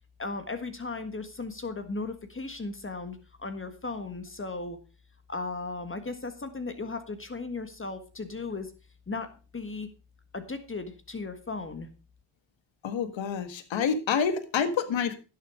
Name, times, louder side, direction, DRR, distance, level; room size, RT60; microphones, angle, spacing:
voice 1, 0.2-4.8 5.3-8.7 9.1-9.9 10.3-11.9, left 3 dB, 25° left, 8 dB, 1.6 m, -36 dB
voice 2, 12.8-15.1, left 6 dB, 70° left, 10 dB, 1.6 m, -28 dB
11.5 x 7.5 x 4.8 m, 0.34 s
cardioid pair, 65°, 47 cm